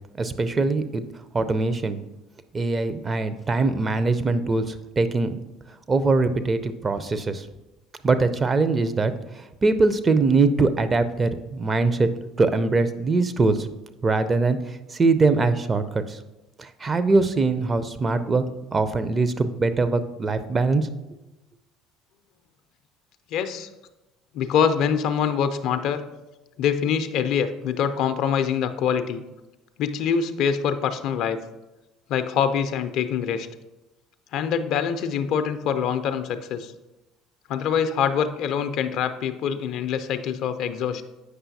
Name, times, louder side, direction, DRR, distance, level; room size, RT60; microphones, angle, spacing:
voice 1, 0.2-1.0 1.3-2.0 2.5-5.4 5.9-7.5 8.0-12.1 12.4-13.7 14.0-16.2 16.6-18.4 18.7-20.9, right 3 dB, 30° right, 12 dB, 0.5 m, -22 dB
voice 2, 23.3-23.7 24.3-26.0 26.6-29.2 29.8-31.4 32.1-33.5 34.3-36.7 37.5-41.0, left 7 dB, 60° left, 10 dB, 0.4 m, -24 dB
8.0 x 5.5 x 2.7 m, 1.0 s
hypercardioid pair, 65°, 0 cm